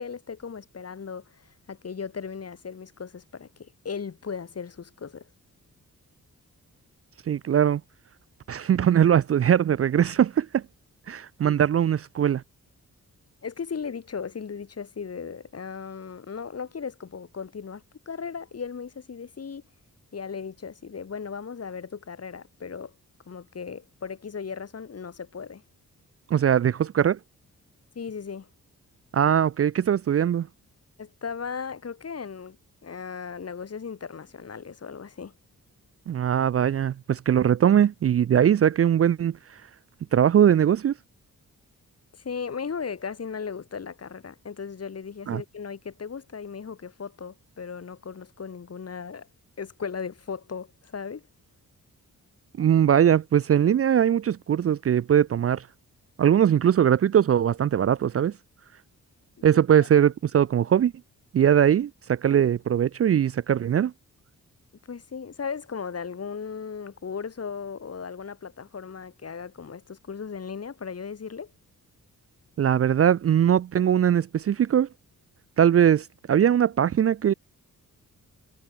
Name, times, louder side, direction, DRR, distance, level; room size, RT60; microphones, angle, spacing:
voice 1, 0.0-5.3 11.4-11.5 13.4-19.6 20.1-22.9 23.3-25.6 27.9-28.5 31.0-32.6 32.8-35.3 42.1-49.3 49.6-51.2 59.4-59.5 59.8-59.9 64.9-71.5, left 6 dB, 50° left, 2.6 m, -37 dB
voice 2, 7.3-7.8 8.5-10.6 11.1-12.4 26.3-27.2 29.1-30.5 36.1-39.4 40.1-40.9 45.3-45.4 52.6-55.6 56.2-58.3 59.4-60.9 61.3-63.9 72.6-74.9 75.6-77.3, right 9 dB, 45° right, 0.4 m, -21 dB
cardioid pair, 95°, 32 cm